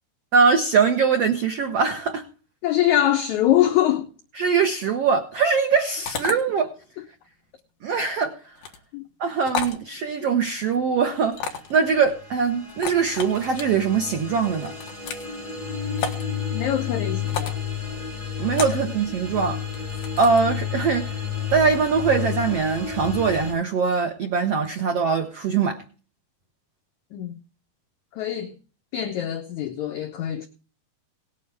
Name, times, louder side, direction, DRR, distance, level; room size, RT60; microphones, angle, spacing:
voice 1, 0.3-2.2 4.3-6.7 7.8-8.3 9.2-11.4 11.7-14.7 18.4-19.6 20.2-21.2 21.5-25.8, right 5 dB, 90° right, 1.3 m, -22 dB
voice 2, 2.6-4.1 8.9-9.0 16.5-17.6 27.1-27.4 28.2-28.5 28.9-30.5, left 12 dB, 85° left, 1.6 m, -23 dB
sound 1, 6.1-6.4 8.6-8.8 9.5-9.8 11.3-11.8 12.7-13.6 14.6-15.3 16.0-16.2 17.3-17.6 18.5-18.8 19.7-20.4, left 6 dB, 70° left, 3.1 m, -31 dB
sound 2, 11.3-23.5, left 7 dB, 10° left, 6.7 m, -31 dB
18.5 x 9.2 x 3.4 m
omnidirectional pair, 4.5 m